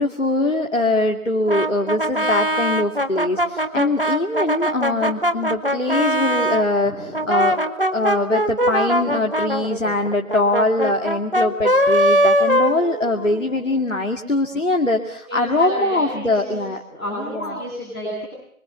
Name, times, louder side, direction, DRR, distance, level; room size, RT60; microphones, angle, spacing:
voice 1, 0.0-7.6 7.9-16.8 17.3-17.6, left 2 dB, 60° left, 3 dB, 2.4 m, -22 dB
Brass instrument, 1.5-6.7 7.1-13.4, equal, 40° right, 1.6 m, -21 dB
voice 2, 6.8-7.2 15.3-16.6 16.9-18.2, equal, 5° left, -15 dB, 5.1 m, -30 dB
28.0 x 25.0 x 5.8 m, 0.69 s
figure-of-eight pair, 180°, 43 cm